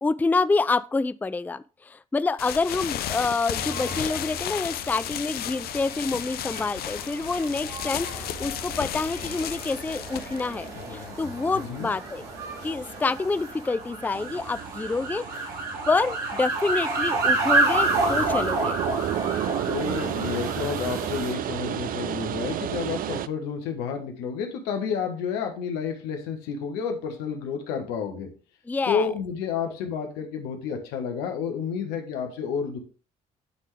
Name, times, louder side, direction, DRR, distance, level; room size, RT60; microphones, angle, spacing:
voice 1, 0.0-12.2 12.6-15.2 15.9-18.8 28.7-29.1, left 3 dB, 10° left, 0.4 m, -27 dB
sound 1, 2.4-12.0, left 12 dB, 70° left, 0.5 m, -34 dB
sound 2, 3.5-21.3, right 2 dB, 80° right, 2.1 m, -30 dB
sound 3, 14.1-23.3, right 11 dB, 60° right, 0.4 m, -32 dB
voice 2, 19.6-28.3 28.9-32.8, left 6 dB, 85° left, 1.3 m, -30 dB
11.0 x 3.8 x 3.4 m
hypercardioid pair, 50°, 17 cm